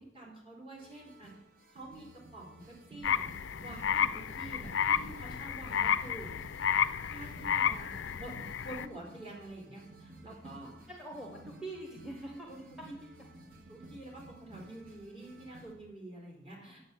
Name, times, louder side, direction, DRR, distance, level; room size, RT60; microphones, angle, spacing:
voice 1, 0.0-1.3 1.7-3.3 3.6-6.3 7.1-8.3 8.6-10.7 12.3-12.6 13.7-16.8, right 1 dB, 30° right, -4 dB, 3.8 m, -48 dB
sound 1, 0.8-15.7, right 2 dB, 50° right, 1.3 m, -53 dB
sound 2, 3.0-8.9, left 8 dB, 80° left, 0.4 m, -32 dB
voice 2, 10.9-12.5 16.6-16.8, right 1 dB, 5° right, 0 dB, 1.2 m, -44 dB
9.3 x 7.7 x 6.8 m, 0.88 s
head